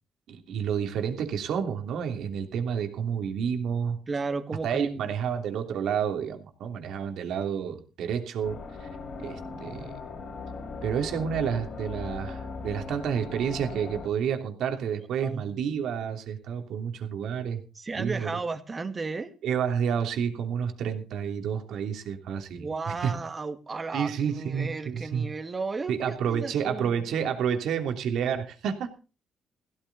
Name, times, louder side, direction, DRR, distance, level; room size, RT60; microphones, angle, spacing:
voice 1, 0.3-4.0 4.6-8.9 9.2-9.9 10.8-17.6 17.9-18.4 19.4-23.1 23.9-25.3 25.9-28.9, right 7 dB, 75° right, 3.0 m, -30 dB
voice 2, 4.1-5.1 15.2-15.5 17.8-19.3 22.5-27.1, right 4 dB, 30° right, 2.2 m, -34 dB
sound 1, 8.4-14.1, left 4 dB, 60° left, 3.7 m, -39 dB
16.0 x 13.0 x 4.1 m
cardioid pair, 90°, 0 cm